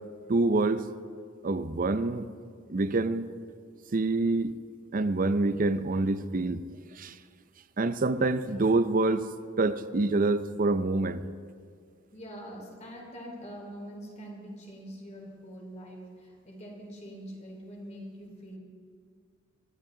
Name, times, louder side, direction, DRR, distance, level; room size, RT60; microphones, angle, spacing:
voice 1, 0.3-0.9 1.4-2.3 2.7-3.3 3.9-4.5 4.9-6.7 6.9-7.2 7.8-11.2, right 2 dB, 45° right, 0.6 m, -26 dB
voice 2, 12.1-18.6, equal, 35° left, 3.3 m, -44 dB
24.0 x 12.0 x 3.9 m
head